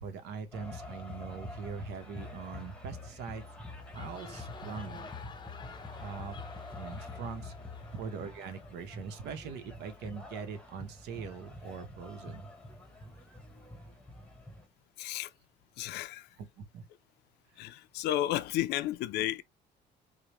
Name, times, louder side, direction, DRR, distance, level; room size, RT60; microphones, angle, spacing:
voice 1, 0.0-3.4 3.9-5.2 6.0-6.4 6.8-7.5 7.9-12.5 16.6-16.8, right 6 dB, 80° right, 0.8 m, -42 dB
sound 1, 0.5-14.7, left 2 dB, 5° left, 1.0 m, -46 dB
sound 2, 3.7-9.2, left 5 dB, 25° left, 0.6 m, -51 dB
voice 2, 15.0-15.3 15.8-16.4 17.6-19.4, left 13 dB, 80° left, 0.4 m, -32 dB
4.8 x 2.1 x 2.9 m
cardioid pair, 110°, 17 cm